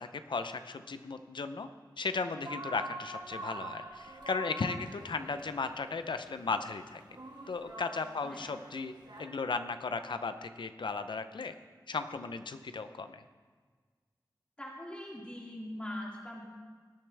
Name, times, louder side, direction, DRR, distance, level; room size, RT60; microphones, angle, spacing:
voice 1, 0.0-1.7 2.0-7.0 7.5-8.9 9.2-11.5 11.9-13.2, left 4 dB, 90° left, 10 dB, 0.6 m, -36 dB
sound 1, 2.4-9.3, right 1 dB, 65° right, 1.7 m, -46 dB
voice 2, 14.6-16.4, left 1 dB, 15° left, -3 dB, 2.4 m, -42 dB
18.5 x 9.3 x 3.4 m, 1.5 s
wide cardioid pair, 75°, 8 cm